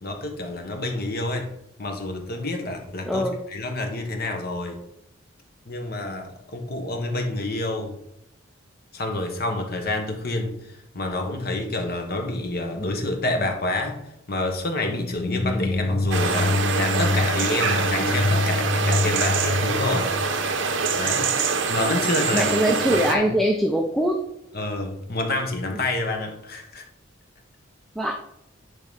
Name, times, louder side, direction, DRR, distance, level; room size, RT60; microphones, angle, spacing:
voice 1, 0.0-1.5 1.8-4.8 5.6-8.0 8.9-20.1 20.9-21.3 21.7-23.3 24.5-26.8, left 2 dB, 50° left, 3 dB, 1.4 m, -28 dB
voice 2, 3.1-3.4 22.3-24.2 28.0-28.1, equal, ahead, 2 dB, 0.6 m, -22 dB
sound 1, 15.0-21.0, left 2 dB, 30° left, 0.8 m, -26 dB
sound 2, 16.1-23.2, right 5 dB, 65° right, 0.9 m, -25 dB
10.5 x 4.1 x 4.1 m, 0.83 s
head